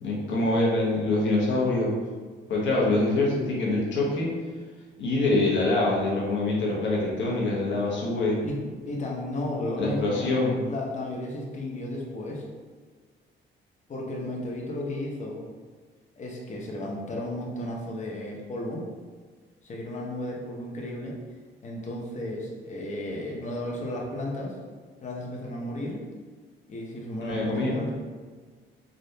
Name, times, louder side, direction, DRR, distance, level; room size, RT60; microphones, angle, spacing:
voice 1, 0.0-1.9 2.5-4.3 5.0-8.4 9.8-10.6 27.2-27.8, left 2 dB, 70° left, -4 dB, 1.0 m, -25 dB
voice 2, 8.4-10.4 10.7-12.5 13.9-15.4 16.2-18.8 19.6-21.2 21.6-24.6 25.0-26.0 26.7-27.9, left 1 dB, 35° left, -2 dB, 0.7 m, -33 dB
3.4 x 2.5 x 2.7 m, 1.5 s
cardioid pair, 90°, 20 cm